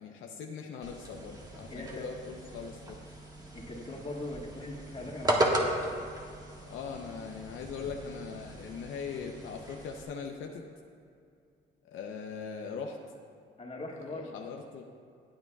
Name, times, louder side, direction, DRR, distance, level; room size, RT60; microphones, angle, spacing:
voice 1, 0.0-3.0 6.7-10.7 11.8-13.0 14.1-14.8, left 6 dB, 80° left, 2 dB, 0.8 m, -40 dB
sound 1, 0.8-10.0, right 1 dB, 20° right, 1.5 m, -36 dB
voice 2, 1.7-2.1 3.5-5.7 13.6-14.4, left 1 dB, 30° left, -2 dB, 2.0 m, -40 dB
22.5 x 8.7 x 2.4 m, 2.3 s
cardioid pair, 90°, 20 cm